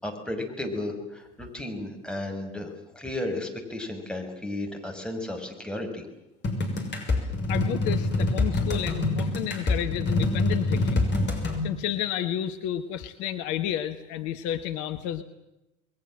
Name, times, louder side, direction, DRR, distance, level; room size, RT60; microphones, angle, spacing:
voice 1, 0.0-6.1, left 1 dB, 5° left, 2 dB, 6.1 m, -34 dB
sound 1, 6.4-11.6, left 2 dB, 30° left, 6.4 m, -26 dB
voice 2, 7.2-11.1 11.6-15.2, left 11 dB, 55° left, 9 dB, 1.3 m, -31 dB
29.0 x 21.0 x 7.6 m, 0.95 s
figure-of-eight pair, 65°, 36 cm